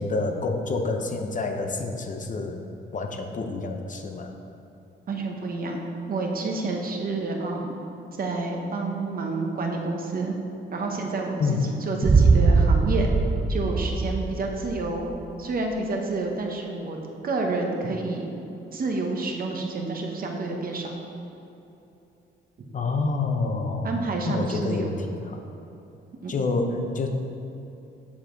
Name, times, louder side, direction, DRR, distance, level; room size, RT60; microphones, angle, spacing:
voice 1, 0.0-2.6 2.9-4.3 11.4-11.8 22.7-23.9 24.2-25.4 26.3-27.1, left 3 dB, 40° left, 4 dB, 0.7 m, -28 dB
voice 2, 5.1-7.8 8.2-10.4 10.7-11.4 11.6-13.1 13.5-15.1 15.4-17.0 17.2-18.4 18.7-20.9 23.8-25.0 26.2-26.3, right 3 dB, 50° right, 1 dB, 1.1 m, -29 dB
Boom, 12.0-15.0, right 4 dB, 20° right, 0.4 m, -21 dB
7.2 x 6.8 x 3.9 m, 2.8 s
cardioid pair, 90°, 20 cm